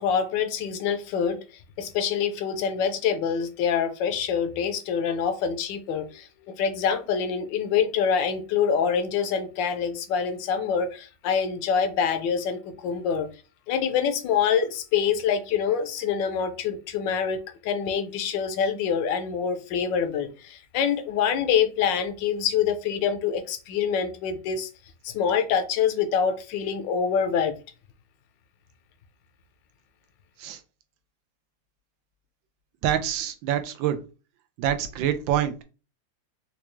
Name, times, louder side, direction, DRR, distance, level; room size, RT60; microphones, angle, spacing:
voice 1, 0.0-1.4 1.8-13.3 13.7-24.7 25.0-27.5, left 7 dB, 80° left, 1.3 m, -25 dB
voice 2, 32.8-34.0 34.6-35.5, right 10 dB, 90° right, 1.3 m, -26 dB
4.5 x 2.3 x 3.0 m
omnidirectional pair, 2.0 m